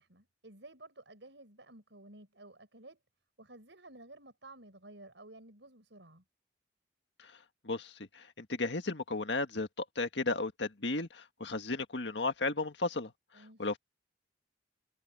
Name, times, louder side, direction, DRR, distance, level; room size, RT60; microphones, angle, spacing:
voice 1, 0.0-3.0 3.4-6.2 13.3-13.7, right 2 dB, 85° right, 6.6 m, -53 dB
voice 2, 7.6-13.1 13.6-13.8, left 3 dB, 75° left, 1.8 m, -34 dB
head